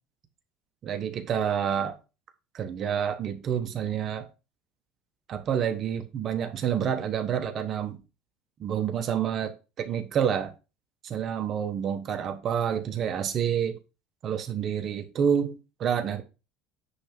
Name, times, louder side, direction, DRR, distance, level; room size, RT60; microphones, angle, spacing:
voice 1, 0.8-2.0 2.5-4.3 5.3-8.0 8.6-9.5 9.8-10.5 11.0-13.8 14.2-16.2, right 8 dB, 35° right, 1.1 m, -28 dB
9.8 x 3.5 x 5.9 m
cardioid pair, 165°, 0 cm